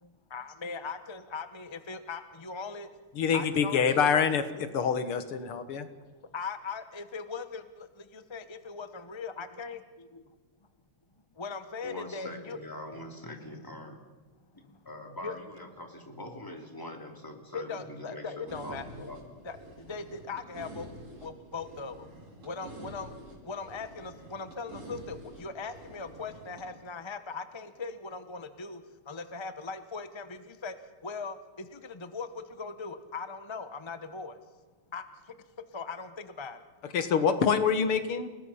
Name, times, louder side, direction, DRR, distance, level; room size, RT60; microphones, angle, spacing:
voice 1, 0.0-2.9 3.3-3.9 6.3-10.2 11.4-12.6 15.2-15.3 17.5-19.1 19.4-20.9 21.2-22.1 22.4-23.1 23.4-30.7 31.0-34.4 34.9-35.0 35.7-36.6, left 4 dB, 30° left, 10 dB, 0.5 m, -39 dB
voice 2, 3.2-5.8 36.9-38.3, left 6 dB, 80° left, 10 dB, 2.3 m, -26 dB
voice 3, 11.8-14.0 14.8-19.2, left 1 dB, 10° left, 3 dB, 2.9 m, -43 dB
sound 1, 18.5-26.6, right 1 dB, 85° right, 7.7 m, -47 dB
29.5 x 19.0 x 5.8 m, 1.3 s
omnidirectional pair, 2.4 m